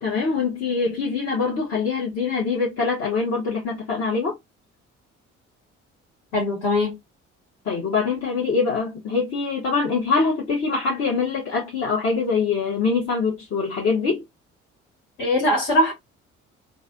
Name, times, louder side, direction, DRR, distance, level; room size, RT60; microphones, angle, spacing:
voice 1, 0.0-4.3 7.6-14.2, left 4 dB, 40° left, 1.1 m, -24 dB
voice 2, 6.3-7.0 15.2-15.9, left 1 dB, 65° left, 2.1 m, -21 dB
3.1 x 2.6 x 2.5 m
figure-of-eight pair, 45°, 37 cm